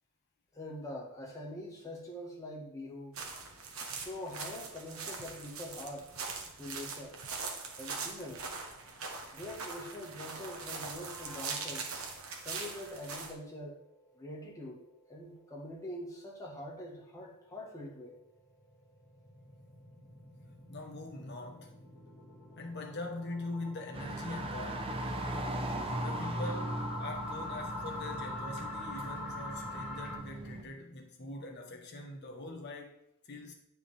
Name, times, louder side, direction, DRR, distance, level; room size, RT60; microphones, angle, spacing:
voice 1, 0.5-3.2 3.9-6.1 6.6-7.2 7.8-8.5 9.3-11.9 12.4-13.8 14.1-14.8 15.1-18.2, left 1 dB, 15° left, 1.5 m, -44 dB
sound 1, 3.1-13.3, right 4 dB, 80° right, 1.2 m, -42 dB
sound 2, 10.5-12.0 12.4-12.5 12.9-13.0 13.4-13.5 18.3-30.2, left 2 dB, 5° right, 2.1 m, -44 dB
voice 2, 20.7-21.8 22.6-25.0 26.0-32.9 33.3-33.5, left 2 dB, 55° left, 1.2 m, -43 dB
sound 3, 23.9-30.6, right 1 dB, 25° right, 0.7 m, -39 dB
9.1 x 4.8 x 3.5 m
head